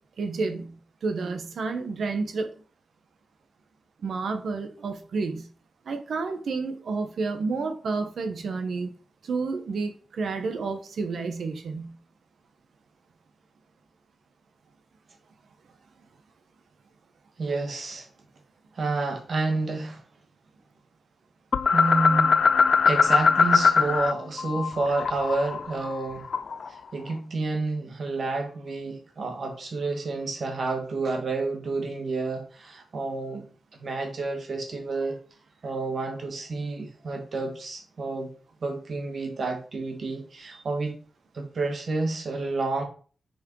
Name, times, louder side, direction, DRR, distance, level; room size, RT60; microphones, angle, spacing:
voice 1, 0.2-2.5 4.0-5.5 5.8-8.9 9.2-12.0, right 4 dB, 70° right, 1.1 m, -30 dB
voice 2, 17.4-18.1 18.7-20.0 21.7-22.4 22.8-26.3 26.7-33.4 33.8-35.2 35.6-38.3 38.6-40.9 41.3-42.8, right 3 dB, 50° right, 1.6 m, -29 dB
sound 1, 21.5-24.1 24.4-26.7, left 5 dB, 55° left, 0.3 m, -21 dB
5.7 x 4.9 x 4.7 m
wide cardioid pair, 160°, 0 cm